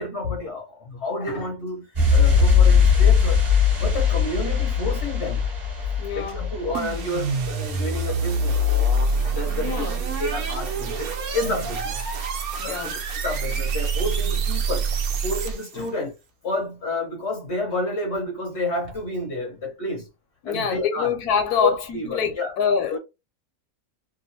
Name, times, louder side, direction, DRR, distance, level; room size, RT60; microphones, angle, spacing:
voice 1, 0.0-3.4 3.8-5.4 6.1-8.6 9.1-12.0 12.6-16.1 16.4-20.1 20.4-21.1 21.6-22.5 22.9-23.0, left 2 dB, 60° left, 0.8 m, -30 dB
sound 1, 2.0-8.5 8.7-8.8, left 6 dB, 30° right, 1.3 m, -20 dB
voice 2, 6.0-6.4 9.5-10.0 12.6-13.0 20.4-23.0, left 6 dB, 80° left, 1.1 m, -25 dB
sound 2, 6.7-15.8, right 2 dB, 75° right, 1.1 m, -26 dB
2.9 x 2.4 x 2.6 m
omnidirectional pair, 1.6 m